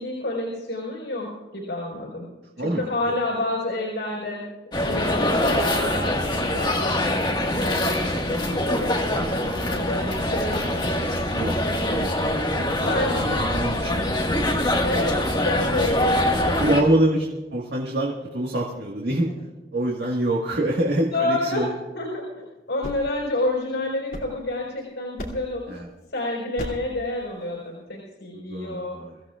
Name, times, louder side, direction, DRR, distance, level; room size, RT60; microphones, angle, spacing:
voice 1, 0.0-2.3 2.6-4.5 4.8-11.1 12.8-13.2 14.8-16.8 21.1-21.7 21.9-25.7 26.1-29.0, left 2 dB, 80° left, -2 dB, 4.6 m, -29 dB
voice 2, 2.6-3.1 9.4-9.7 11.3-14.2 16.0-16.1 16.6-19.3 19.7-21.7 25.7-25.9 28.3-29.2, right 1 dB, 75° right, -2 dB, 1.7 m, -26 dB
sound 1, 4.7-16.8, left 1 dB, 25° left, 1.7 m, -24 dB
sound 2, 22.5-24.8 25.2-25.7 26.6-27.0, left 1 dB, 55° left, 2.8 m, -37 dB
25.0 x 15.0 x 2.4 m, 1.2 s
head